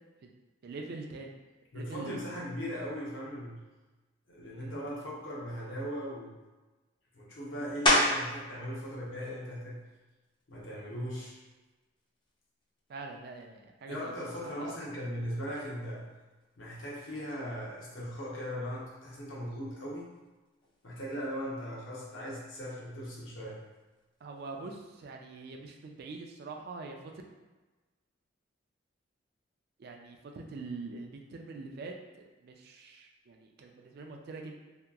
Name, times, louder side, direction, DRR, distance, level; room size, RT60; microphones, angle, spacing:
voice 1, 0.6-1.3 1.7-2.5 4.6-5.0 12.9-14.8 24.2-27.1 29.8-34.6, right 3 dB, 50° right, 3 dB, 0.3 m, -44 dB
voice 2, 1.7-3.6 4.3-6.4 7.1-9.8 10.5-11.4 13.9-16.1 16.6-20.1 20.8-23.6, equal, 70° left, -5 dB, 0.7 m, -38 dB
sound 1, 7.9-8.4 9.0-13.4 13.9-19.1 19.4-25.0, left 1 dB, 25° left, 0.4 m, -36 dB
2.7 x 2.3 x 2.3 m, 1.2 s
head